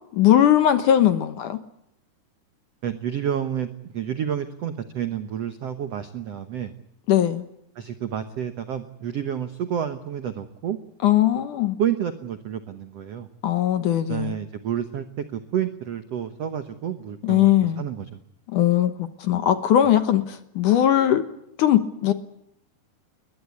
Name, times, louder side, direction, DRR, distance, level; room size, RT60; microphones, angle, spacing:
voice 1, 0.1-1.6 7.1-7.4 11.0-11.8 13.4-14.4 17.2-17.8 18.5-21.2 21.6-22.1, left 11 dB, 65° left, 9 dB, 2.1 m, -19 dB
voice 2, 2.8-6.7 7.7-10.8 11.8-13.3 14.1-18.2, right 9 dB, 85° right, 9 dB, 1.4 m, -29 dB
21.5 x 20.5 x 9.6 m, 0.79 s
omnidirectional pair, 4.7 m